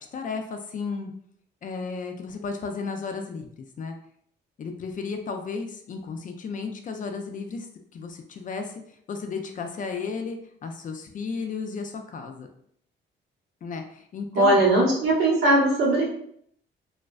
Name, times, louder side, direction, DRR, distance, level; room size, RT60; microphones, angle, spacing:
voice 1, 0.1-1.1 1.6-3.9 4.6-7.7 7.9-8.7 9.1-12.5 13.6-14.7, left 5 dB, 40° left, 5 dB, 0.4 m, -33 dB
voice 2, 14.3-16.0, right 2 dB, 90° right, -5 dB, 1.0 m, -19 dB
2.5 x 2.1 x 2.3 m, 0.66 s
cardioid pair, 90°, 20 cm